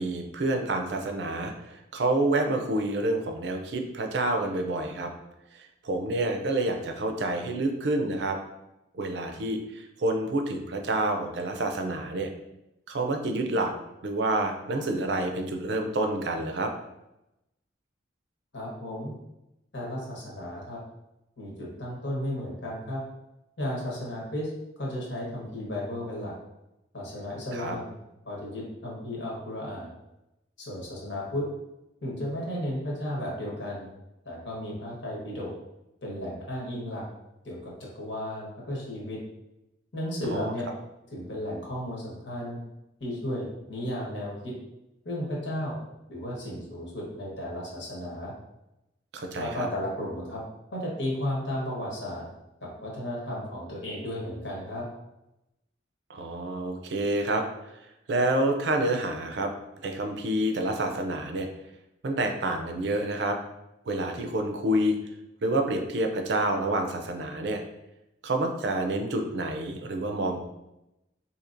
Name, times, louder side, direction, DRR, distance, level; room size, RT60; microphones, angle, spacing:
voice 1, 0.0-5.1 5.5-8.4 8.9-12.3 12.9-13.7 14.0-16.7 27.5-27.8 40.3-40.5 49.1-49.7 56.1-57.5 57.7-59.5 59.8-61.5 62.0-63.4 63.9-64.9 65.4-67.6 68.2-70.4, right 2 dB, 60° right, 4 dB, 0.5 m, -28 dB
voice 2, 18.5-19.1 19.7-20.8 21.4-23.0 23.6-24.5 24.8-26.3 26.9-27.9 28.2-29.9 30.6-31.4 32.0-33.9 34.2-35.5 36.0-37.0 37.4-39.2 39.9-40.7 41.1-42.6 43.0-44.5 45.0-45.7 46.1-48.3 49.3-50.4 50.7-52.2 52.6-54.8, left 1 dB, 70° left, -4 dB, 1.3 m, -34 dB
4.3 x 2.8 x 2.5 m, 0.91 s
head